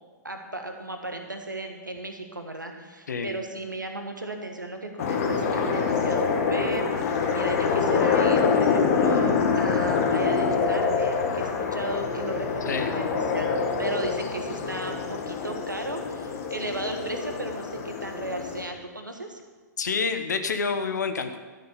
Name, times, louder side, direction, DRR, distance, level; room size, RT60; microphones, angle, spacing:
voice 1, 0.2-19.4, right 2 dB, 85° right, 4 dB, 1.5 m, -35 dB
sound 1, 5.0-18.6, left 5 dB, 50° left, 1.6 m, -25 dB
voice 2, 19.8-21.4, left 5 dB, 65° left, 8 dB, 1.1 m, -28 dB
13.0 x 6.8 x 7.1 m, 1.4 s
figure-of-eight pair, 110°, 10 cm